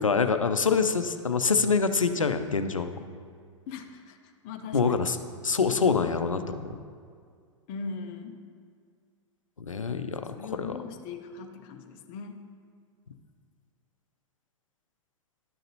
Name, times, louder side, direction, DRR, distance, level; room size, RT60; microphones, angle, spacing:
voice 1, 0.0-2.9 4.7-5.2 5.4-6.8 9.6-10.8, left 5 dB, 85° left, 9 dB, 0.5 m, -25 dB
voice 2, 3.7-4.2 4.4-5.1 7.7-8.4 10.1-12.4, left 5 dB, 35° left, 6 dB, 0.7 m, -40 dB
11.5 x 6.4 x 2.8 m, 2.1 s
figure-of-eight pair, 100°, 16 cm